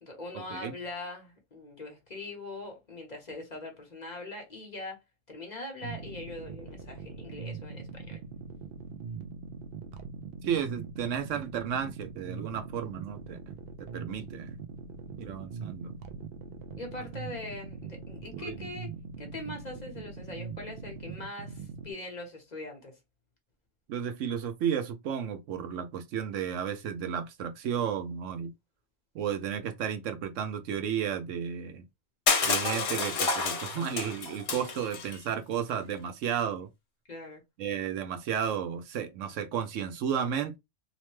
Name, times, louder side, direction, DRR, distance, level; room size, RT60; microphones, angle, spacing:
voice 1, 0.0-5.0 5.3-8.2 16.8-18.9 19.2-23.0 37.1-37.4, left 2 dB, 40° left, 0.8 m, -42 dB
sound 1, 5.8-21.9, right 5 dB, 60° right, 0.7 m, -42 dB
voice 2, 10.4-13.4 13.8-14.6 15.2-15.9 18.3-18.6 23.9-28.5 29.1-31.8 32.4-36.7 37.6-40.6, right 8 dB, 85° right, 1.0 m, -33 dB
Crushing, 32.3-35.2, left 5 dB, 70° left, 1.0 m, -29 dB
2.9 x 2.1 x 3.0 m
omnidirectional pair, 1.2 m